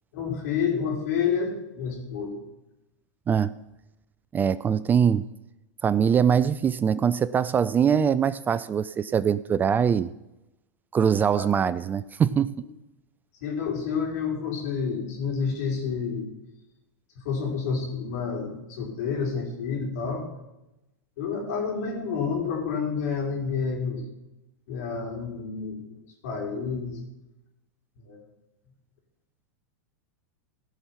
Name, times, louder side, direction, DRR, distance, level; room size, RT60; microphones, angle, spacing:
voice 1, 0.1-2.5 11.3-11.4 13.4-16.3 17.2-20.3 21.2-24.1 24.7-26.0 26.2-27.0 28.1-28.2, left 6 dB, 65° left, -1 dB, 4.7 m, -29 dB
voice 2, 4.3-5.3 5.8-10.1 10.9-12.6, right 7 dB, 20° right, 16 dB, 0.4 m, -22 dB
16.5 x 6.1 x 5.8 m, 0.93 s
hypercardioid pair, 115°, 9 cm